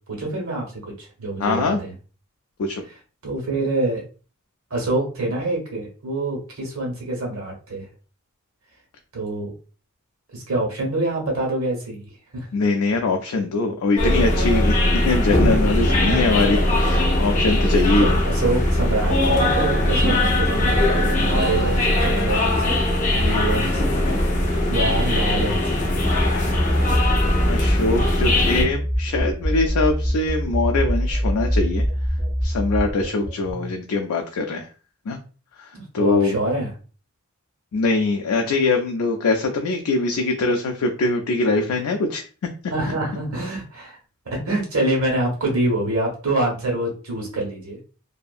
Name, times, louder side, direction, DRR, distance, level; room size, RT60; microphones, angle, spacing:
voice 1, 0.1-1.9 3.2-4.0 4.7-7.9 9.1-9.5 10.3-12.5 15.9-16.2 17.6-22.8 23.1-23.9 24.2-24.4 24.7-25.9 35.7-36.7 42.7-44.0 44.2-47.8, right 2 dB, 70° right, -1 dB, 1.2 m, -26 dB
voice 2, 1.4-1.8 2.6-2.8 12.5-14.8 15.0-18.2 27.4-31.8 32.4-34.7 35.1-35.2 35.6-36.3 37.7-42.2, left 3 dB, 80° left, 3 dB, 0.4 m, -22 dB
sound 1, 14.0-28.6, left 1 dB, 35° left, 0.7 m, -20 dB
sound 2, 26.1-33.7, equal, 10° right, 0.8 m, -24 dB
2.7 x 2.6 x 2.4 m, 0.36 s
head